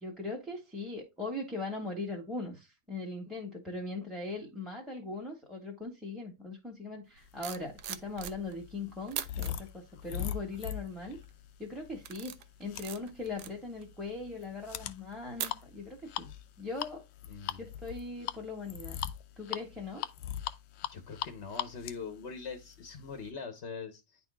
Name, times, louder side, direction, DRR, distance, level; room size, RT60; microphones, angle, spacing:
voice 1, 0.0-11.2 11.6-16.3 16.6-17.0 17.6-19.0 19.4-20.1, left 3 dB, ahead, 1.2 m, -40 dB
sound 1, 7.2-8.7 9.1-9.5 10.1-10.5 11.0-11.3 11.8-16.1 16.4-16.6, right 11 dB, 85° right, 1.2 m, -42 dB
sound 2, 7.6-23.3, left 11 dB, 75° left, 1.1 m, -41 dB
voice 2, 17.3-17.6 20.9-24.2, left 5 dB, 50° left, 1.0 m, -42 dB
10.0 x 4.2 x 2.2 m
omnidirectional pair, 1.7 m